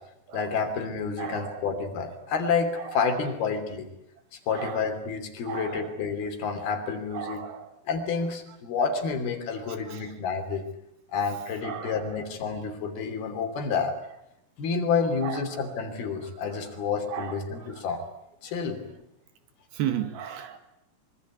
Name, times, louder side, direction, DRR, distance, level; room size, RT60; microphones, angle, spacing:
voice 1, 0.3-3.9 4.3-7.4 7.9-10.6 11.1-13.9 14.6-18.0 18.4-19.0, left 5 dB, 70° left, 7 dB, 4.8 m, -29 dB
voice 2, 1.2-1.7 2.9-3.0 4.5-4.9 5.5-5.9 7.1-7.7 9.8-10.0 11.6-12.0 15.2-15.4 17.1-17.7 19.7-20.6, right 9 dB, 70° right, 9 dB, 3.7 m, -34 dB
24.5 x 23.5 x 9.7 m, 0.81 s
omnidirectional pair, 4.7 m